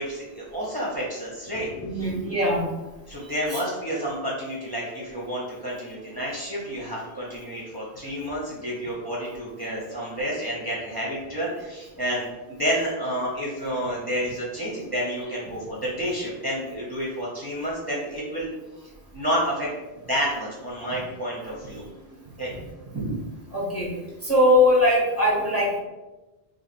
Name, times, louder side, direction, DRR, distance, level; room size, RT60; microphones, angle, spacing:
voice 1, 0.0-2.1 3.1-18.5 19.1-19.7 20.1-21.8 22.4-22.5 22.9-23.1, equal, 25° right, -6 dB, 0.7 m, -30 dB
voice 2, 1.8-2.6 3.2-3.6 23.5-23.9 24.2-25.8, left 1 dB, 15° left, -4 dB, 0.8 m, -21 dB
2.9 x 2.8 x 4.2 m, 1.1 s
omnidirectional pair, 1.1 m